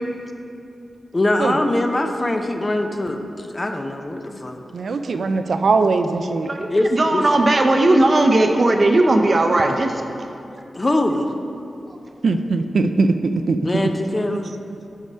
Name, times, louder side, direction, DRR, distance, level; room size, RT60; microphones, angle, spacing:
voice 1, 1.1-4.6 6.7-7.2 10.8-11.3 13.6-14.5, left 1 dB, 30° left, 5 dB, 0.6 m, -22 dB
voice 2, 4.7-6.5 12.2-13.6, right 3 dB, 75° right, 7 dB, 0.4 m, -20 dB
voice 3, 6.4-10.0, right 2 dB, 45° right, 4 dB, 0.7 m, -17 dB
8.2 x 4.7 x 5.5 m, 2.7 s
wide cardioid pair, 70°, 0 cm